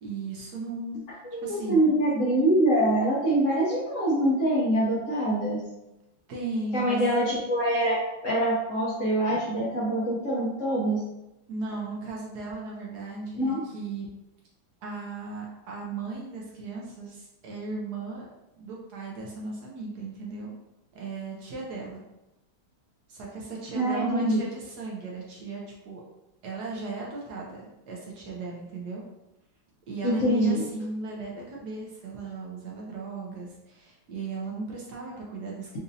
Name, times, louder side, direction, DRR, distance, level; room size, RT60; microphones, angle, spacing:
voice 1, 0.0-1.9 6.3-7.1 11.5-14.1 14.8-18.3 18.6-20.5 20.9-22.0 23.1-26.0 26.4-29.0 29.9-35.8, right 3 dB, 70° right, -3 dB, 0.9 m, -36 dB
voice 2, 1.3-5.6 6.7-8.0 8.2-11.0 13.4-13.6 23.7-24.4 30.0-30.7, right 1 dB, 70° left, -7 dB, 0.7 m, -24 dB
4.1 x 2.5 x 2.6 m, 0.93 s
omnidirectional pair, 2.3 m